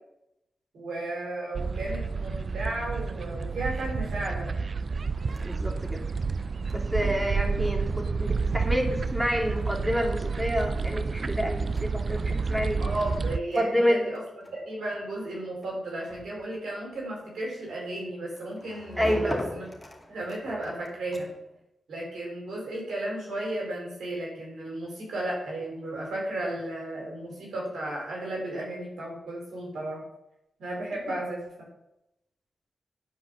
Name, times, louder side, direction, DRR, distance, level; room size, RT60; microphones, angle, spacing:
voice 1, 0.7-4.5 12.8-14.2 14.5-19.7 20.1-21.3 21.9-30.0 30.6-31.4, right 1 dB, 80° right, -2 dB, 4.1 m, -34 dB
sound 1, 1.5-13.4, right 4 dB, 55° right, 0.5 m, -30 dB
sound 2, 5.1-21.6, left 1 dB, 10° left, 2.5 m, -44 dB
voice 2, 5.4-6.0 6.7-12.8 13.5-14.0 19.0-19.4, equal, 10° right, 2 dB, 2.8 m, -28 dB
10.0 x 4.9 x 7.3 m, 0.87 s
cardioid pair, 50°, 0 cm